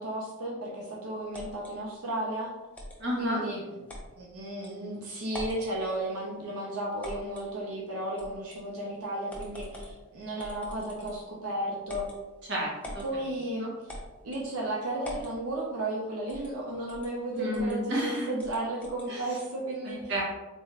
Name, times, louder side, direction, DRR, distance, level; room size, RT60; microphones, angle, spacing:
voice 1, 0.0-2.5 3.2-3.6 4.2-12.1 13.0-13.7 14.2-20.0, right 1 dB, 90° right, -3 dB, 0.6 m, -34 dB
sound 1, 1.3-1.7 2.7-3.0 3.9-4.1 4.6-4.7 5.3-5.6 7.0-7.5 8.2-8.6 9.3-10.0 10.4-11.3 11.9-12.2 12.8-13.1 13.9-14.5 15.0-15.3 16.3-16.5 16.9-17.1 17.5-17.8 18.4-19.1, equal, 5° left, 0.5 m, -42 dB
voice 2, 3.0-3.4 12.5-13.0 13.6-13.7 17.3-18.3 19.1-19.3 19.8-20.2, equal, 55° right, -4 dB, 1.0 m, -31 dB
3.8 x 2.4 x 3.1 m, 1.1 s
head